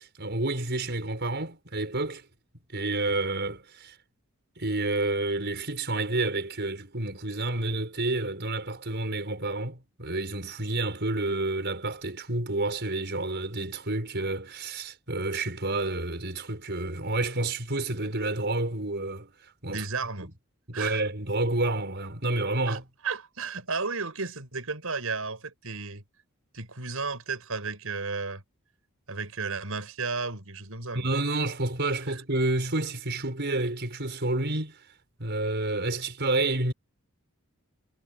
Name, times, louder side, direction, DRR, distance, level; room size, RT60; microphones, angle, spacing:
voice 1, 0.0-2.2 2.7-3.9 4.6-19.3 19.6-19.8 20.2-20.3 20.7-22.8 30.9-34.7 35.2-36.7, right 2 dB, 55° right, 5.6 m, -29 dB
voice 2, 19.6-20.3 20.7-21.0 22.7-22.8 23.0-26.0 26.5-28.4 29.1-31.1 32.1-32.2, right 4 dB, 75° right, 6.3 m, -33 dB
head